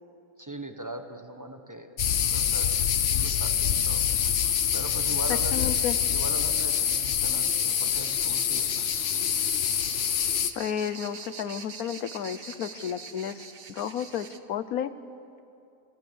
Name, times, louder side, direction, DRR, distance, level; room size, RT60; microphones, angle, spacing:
voice 1, 0.4-4.0 4.7-5.7 6.1-8.9, right 1 dB, 15° right, 6 dB, 1.2 m, -40 dB
sound 1, 2.0-10.5, left 9 dB, 60° left, 1.1 m, -26 dB
sound 2, 5.1-14.4, right 5 dB, 45° right, 1.1 m, -43 dB
voice 2, 5.3-6.0 10.5-13.4 13.7-14.9, left 9 dB, 80° left, 13 dB, 1.3 m, -32 dB
26.5 x 21.0 x 7.0 m, 2.6 s
omnidirectional pair, 1.5 m